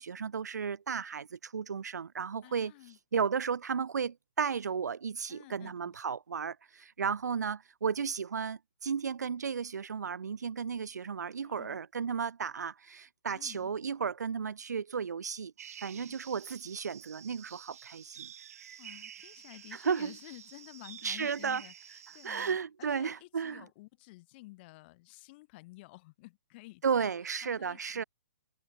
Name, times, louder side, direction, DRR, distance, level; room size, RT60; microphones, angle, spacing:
voice 1, 0.0-2.7 3.1-15.5 15.8-18.3 19.8-20.1 21.0-21.6 22.2-23.6 26.8-28.0, right 6 dB, 75° right, 1.5 m, -34 dB
voice 2, 2.4-3.0 5.3-6.0 11.3-11.8 13.3-13.7 15.9-16.2 18.8-27.2 27.4-28.0, left 22 dB, 40° left, 2.4 m, -52 dB
sound 1, 15.6-22.5, right 9 dB, 60° right, 2.9 m, -50 dB
hypercardioid pair, 135°, 9 cm